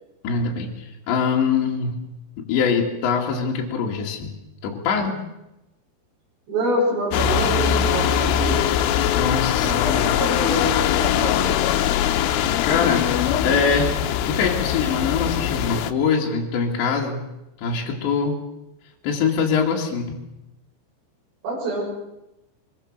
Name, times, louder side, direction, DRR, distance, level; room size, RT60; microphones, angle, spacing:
voice 1, 0.2-2.0 2.5-4.3 4.6-5.2 9.1-10.0 12.6-13.1 13.4-14.0 14.2-17.3 17.6-18.4 19.0-20.2, left 5 dB, 65° left, -1 dB, 4.4 m, -23 dB
voice 2, 6.5-8.6 9.6-11.6 21.4-21.8, right 1 dB, 60° right, -4 dB, 9.1 m, -26 dB
sound 1, 7.1-15.9, left 9 dB, 85° left, 3.6 m, -21 dB
24.5 x 22.5 x 6.7 m, 0.92 s
omnidirectional pair, 5.7 m